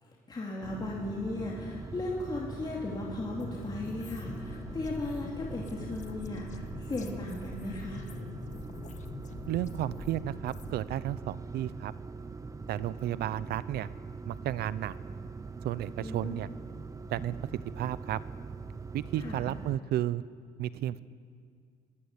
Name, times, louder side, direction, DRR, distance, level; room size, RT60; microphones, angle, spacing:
voice 1, 0.0-8.0 16.0-16.4 19.2-19.5, left 2 dB, 25° left, -3 dB, 3.0 m, -37 dB
sound 1, 0.6-19.8, right 4 dB, 20° right, 0.7 m, -42 dB
sound 2, 3.4-10.8, left 5 dB, 45° left, 1.7 m, -44 dB
voice 2, 9.5-11.9 12.7-13.9 14.3-14.9 15.6-16.5 17.1-17.4 17.8-18.2 18.9-20.2 20.6-21.0, right 13 dB, 70° right, 17 dB, 0.7 m, -33 dB
21.0 x 17.0 x 8.3 m, 2.1 s
cardioid pair, 110°, 17 cm